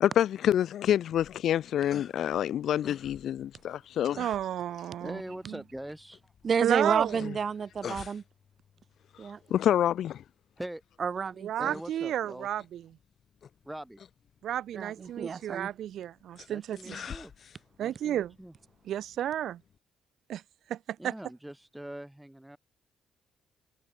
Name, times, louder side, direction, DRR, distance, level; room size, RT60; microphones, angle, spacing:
voice 1, 0.0-4.2 7.2-7.3 9.5-10.2, left 10 dB, 70° left, 0.7 m, -27 dB
sound 1, 1.1-19.8, left 7 dB, 55° left, 8.0 m, -50 dB
voice 2, 4.2-5.2 5.5-5.6 6.6-7.2 11.4-12.8 14.4-17.0 17.8-18.3 18.9-19.6 20.3-20.4 20.7-21.1, right 11 dB, 70° right, 2.0 m, -32 dB
voice 3, 5.0-6.3 10.6-10.8 11.6-12.5 13.6-14.0 16.5-17.3 17.8-18.5 21.0-22.6, right 1 dB, 5° right, 7.5 m, -42 dB
voice 4, 6.4-8.2 9.2-9.4 11.0-11.5 14.7-15.7 16.9-17.0, right 6 dB, 45° right, 0.8 m, -30 dB
cardioid pair, 95°, 0 cm